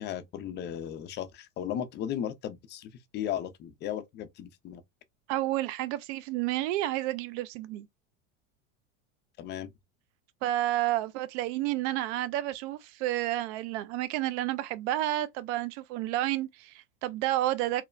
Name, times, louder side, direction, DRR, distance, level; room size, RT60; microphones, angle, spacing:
voice 1, 0.0-4.8 9.4-9.7, left 10 dB, 30° left, 0.4 m, -36 dB
voice 2, 5.3-7.9 10.4-17.8, right 15 dB, 60° right, 0.5 m, -30 dB
3.1 x 2.0 x 2.3 m
hypercardioid pair, 105°, 40 cm